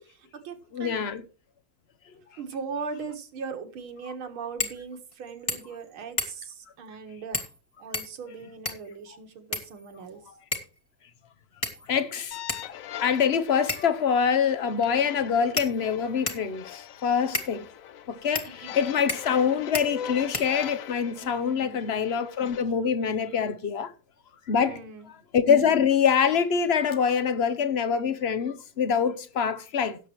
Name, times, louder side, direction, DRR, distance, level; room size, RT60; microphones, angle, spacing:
voice 1, 0.0-1.0 2.4-7.5 7.8-10.3 18.5-18.7 21.2-21.9 24.6-25.1, right 5 dB, 85° right, 2.4 m, -39 dB
voice 2, 0.7-1.2 11.9-17.7 18.1-23.9 24.5-24.8 25.3-30.0, left 7 dB, 55° left, 0.7 m, -25 dB
sound 1, 4.6-4.8 5.1-5.2 5.5-5.8 6.2-6.6 7.3-7.6 7.9-8.9 9.5-10.1 10.5-10.8 11.6-12.0 12.5-12.6 13.7-14.0 14.8-14.9 15.6-16.5 17.3-17.5 18.3-18.5 19.1-19.4 19.7-19.9 20.3-20.9, left 2 dB, 15° left, 1.6 m, -32 dB
sound 2, 12.3-22.6, left 10 dB, 85° left, 0.7 m, -41 dB
17.0 x 7.5 x 3.1 m
omnidirectional pair, 2.2 m